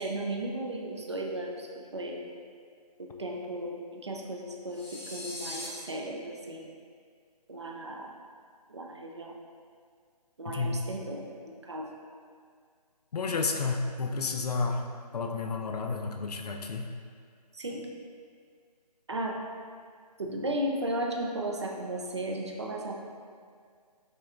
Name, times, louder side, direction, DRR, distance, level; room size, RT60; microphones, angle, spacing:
voice 1, 0.0-2.2 3.0-6.7 7.5-8.1 8.7-9.3 10.4-11.9 17.5-17.8 19.1-19.4 20.2-22.9, right 1 dB, 45° right, 0 dB, 0.4 m, -35 dB
sound 1, 4.7-5.7, left 1 dB, 45° left, 1.3 m, -40 dB
voice 2, 10.5-10.8 13.1-14.8 15.1-16.9, left 4 dB, 70° left, 4 dB, 0.4 m, -31 dB
6.4 x 2.2 x 2.4 m, 2.1 s
hypercardioid pair, 175°, 21 cm